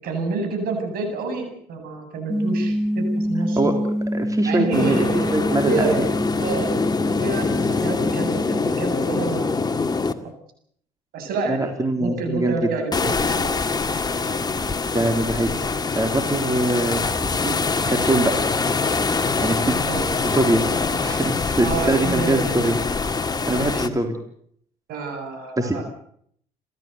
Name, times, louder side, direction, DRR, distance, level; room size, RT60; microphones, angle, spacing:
voice 1, 0.0-3.7 4.4-6.0 6.4-6.7 7.2-10.1 11.1-11.7 12.0-13.5 19.8-20.0 21.6-22.6 23.4-23.8 24.9-25.8, right 3 dB, 65° right, 5 dB, 7.9 m, -28 dB
sound 1, 2.3-8.7, equal, ahead, 0.8 m, -26 dB
voice 2, 4.1-5.1 5.3-6.0 11.5-12.7 14.9-15.5 16.0-17.1 17.4-17.6 17.9-18.4 19.4-20.6 21.0-22.8 23.1-24.2 25.6-25.8, right 2 dB, 20° right, 5 dB, 3.7 m, -23 dB
sound 2, 4.7-10.1 12.9-23.9, left 4 dB, 25° left, 2.0 m, -24 dB
29.5 x 14.0 x 8.2 m, 0.68 s
hypercardioid pair, 60°, 17 cm